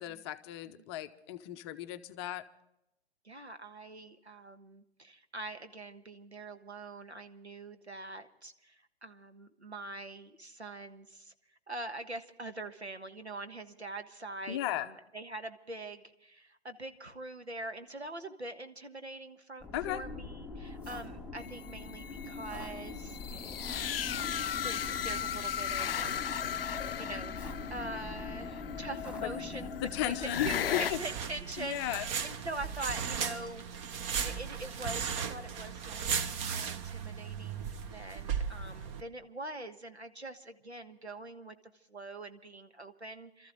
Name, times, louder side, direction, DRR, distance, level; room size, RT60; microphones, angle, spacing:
voice 1, 0.0-2.4 14.5-14.9 19.7-20.0 29.2-29.3 29.8-31.0 31.6-32.1, left 13 dB, 25° left, 0.6 m, -35 dB
voice 2, 3.2-11.3 11.7-24.3 24.6-26.4 27.0-29.7 30.0-33.6 34.2-41.5 41.9-43.5, right 2 dB, 90° right, 1.5 m, -44 dB
sound 1, 19.6-30.7, left 3 dB, 5° right, 3.1 m, -43 dB
sound 2, 21.4-30.9, left 9 dB, 60° left, 0.5 m, -37 dB
sound 3, 30.4-39.0, right 7 dB, 30° right, 0.9 m, -36 dB
26.5 x 14.0 x 3.7 m
figure-of-eight pair, 115°, 32 cm